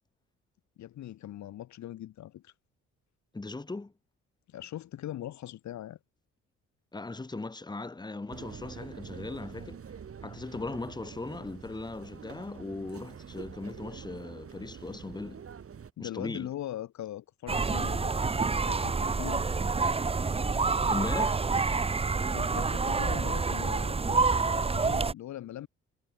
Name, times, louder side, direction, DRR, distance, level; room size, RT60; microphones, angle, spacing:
voice 1, 0.8-2.5 4.5-6.0 16.0-18.1 18.7-19.5 22.3-25.7, left 13 dB, 70° left, 1.1 m, -41 dB
voice 2, 3.3-3.9 6.9-9.8 10.2-15.4 16.0-16.5 20.9-21.5, left 3 dB, 15° left, 1.4 m, -38 dB
sound 1, 8.3-15.9, right 7 dB, 50° right, 6.3 m, -46 dB
sound 2, 17.5-25.1, right 4 dB, 20° right, 0.8 m, -28 dB
cardioid pair, 90°, 30 cm